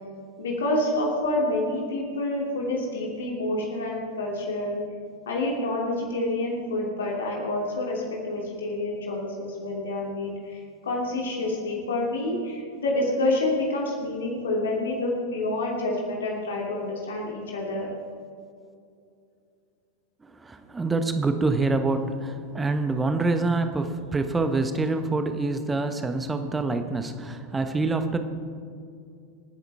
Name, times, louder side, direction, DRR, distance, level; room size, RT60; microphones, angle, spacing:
voice 1, 0.4-4.8 5.3-10.6 10.8-17.9, left 2 dB, 65° left, -2 dB, 2.9 m, -28 dB
voice 2, 20.3-28.2, right 3 dB, 10° right, 8 dB, 1.2 m, -26 dB
27.0 x 10.0 x 3.6 m, 2.4 s
figure-of-eight pair, 90°, 0 cm